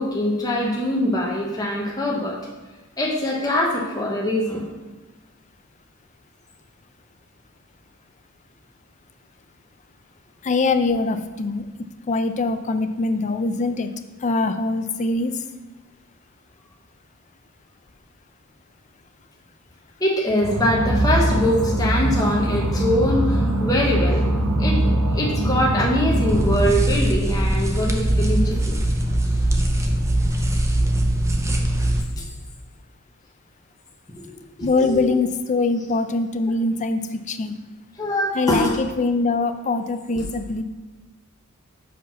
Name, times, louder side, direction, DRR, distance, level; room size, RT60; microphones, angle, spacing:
voice 1, 0.0-2.4 3.0-4.6 20.0-24.3 24.6-24.8 25.1-28.8 32.2-32.3 34.2-34.3 34.6-35.2 38.0-38.8, left 1 dB, 15° left, -3 dB, 1.0 m, -23 dB
voice 2, 10.4-11.7 12.1-13.9 14.2-15.4 34.6-37.6 38.3-40.6, left 3 dB, 35° left, 8 dB, 0.4 m, -23 dB
sound 1, 20.4-26.6, right 1 dB, 85° right, 1.0 m, -22 dB
sound 2, 26.3-32.0, right 1 dB, 15° right, 0.6 m, -21 dB
5.8 x 5.0 x 5.6 m, 1.2 s
head